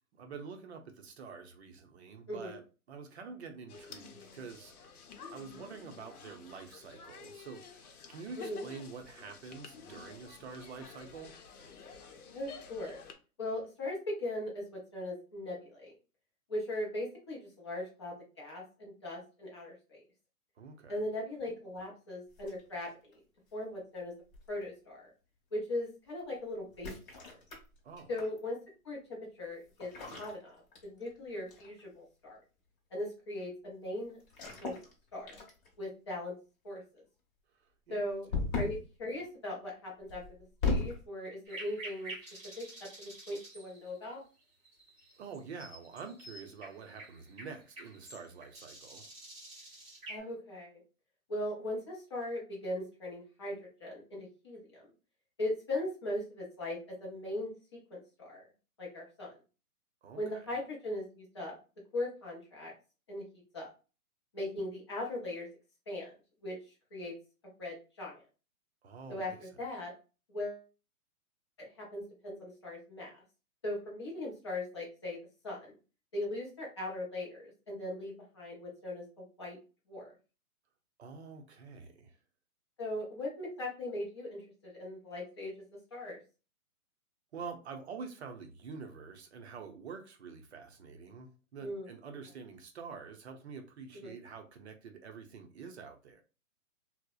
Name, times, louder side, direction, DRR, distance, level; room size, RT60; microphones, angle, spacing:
voice 1, 0.2-2.6 2.9-4.7 5.3-11.3 20.6-21.0 27.8-28.1 37.9-38.0 45.2-49.1 60.0-60.5 68.8-69.4 81.0-82.1 87.3-96.2, right 5 dB, 50° right, 0.5 m, -47 dB
voice 2, 2.3-2.6 8.4-8.6 12.3-13.0 13.4-15.9 16.5-20.0 20.9-23.2 23.5-24.1 24.5-25.1 25.5-27.4 28.1-28.6 28.8-29.9 30.2-30.6 30.8-32.4 32.9-34.2 34.6-34.7 35.1-35.4 35.8-36.3 36.6-36.8 37.9-38.3 38.6-40.2 40.6-42.1 42.6-42.7 43.0-44.2 50.1-50.8 51.3-54.9 55.4-57.5 57.9-58.4 58.8-59.3 60.2-61.5 61.9-62.7 63.1-63.2 63.5-63.7 64.3-65.5 65.9-66.1 66.4-66.6 66.9-67.1 67.6-68.2 69.1-69.9 70.3-70.6 71.6-73.1 73.6-75.2 75.4-75.7 76.1-79.6 79.9-80.1 82.8-85.5 85.9-86.2 91.6-91.9 93.9-94.1, left 1 dB, 20° left, 0.4 m, -39 dB
sound 1, 3.7-13.1, left 5 dB, 80° left, 0.7 m, -51 dB
sound 2, 22.4-23.1 24.3-24.7 26.7-28.4 29.8-31.2 31.5-31.8 34.3-34.9 35.3-35.8 38.3-38.9 40.1-41.0, left 4 dB, 40° left, 0.9 m, -36 dB
sound 3, 41.5-50.2, right 2 dB, 15° right, 0.9 m, -49 dB
2.6 x 2.0 x 2.3 m
hypercardioid pair, 150°, 44 cm